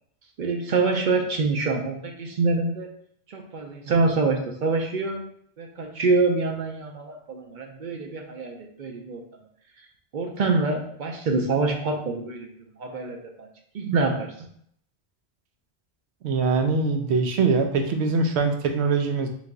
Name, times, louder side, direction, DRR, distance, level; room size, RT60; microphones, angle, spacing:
voice 1, 0.4-2.9 3.3-5.2 5.6-9.2 10.1-12.5 12.8-13.5 13.7-14.5, right 3 dB, 55° right, 3 dB, 0.6 m, -25 dB
voice 2, 16.2-19.3, right 4 dB, 90° right, 5 dB, 0.9 m, -23 dB
3.3 x 3.2 x 3.8 m, 0.67 s
omnidirectional pair, 1.1 m